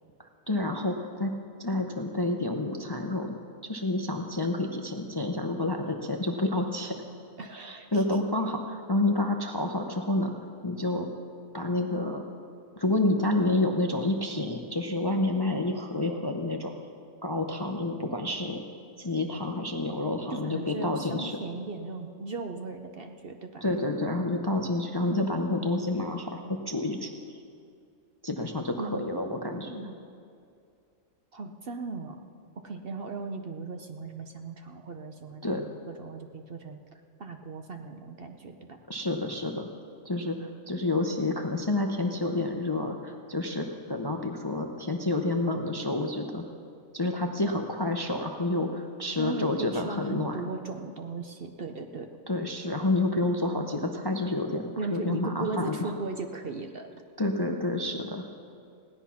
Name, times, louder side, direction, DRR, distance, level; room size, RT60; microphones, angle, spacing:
voice 1, 0.2-1.3 1.6-3.4 3.7-6.9 7.5-10.3 10.6-11.1 11.5-12.2 12.8-16.7 17.2-18.6 19.0-21.4 23.6-27.1 28.2-29.7 35.4-35.6 38.9-39.7 40.0-46.4 46.9-50.5 52.3-54.6 54.9-55.9 57.2-58.2, left 2 dB, 25° left, 3 dB, 0.6 m, -29 dB
voice 2, 7.4-8.0 20.3-23.6 28.8-30.0 31.3-32.2 32.6-36.8 37.2-38.8 49.2-52.1 54.8-56.9, right 3 dB, 50° right, 5 dB, 0.9 m, -37 dB
17.0 x 10.5 x 5.8 m, 2.4 s
omnidirectional pair, 1.4 m